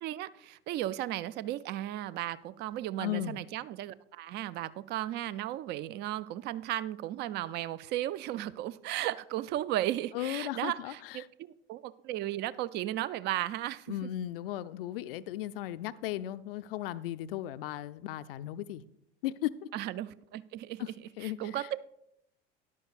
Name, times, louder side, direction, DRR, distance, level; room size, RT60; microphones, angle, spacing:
voice 1, 0.0-14.1 19.7-20.8 21.2-21.8, right 14 dB, 35° right, 0.4 m, -35 dB
voice 2, 3.0-3.4 10.1-11.3 13.9-18.8 19.2-19.7 20.8-20.9 21.2-21.7, left 13 dB, 60° left, 0.5 m, -36 dB
13.0 x 10.5 x 2.4 m
figure-of-eight pair, 70°, 32 cm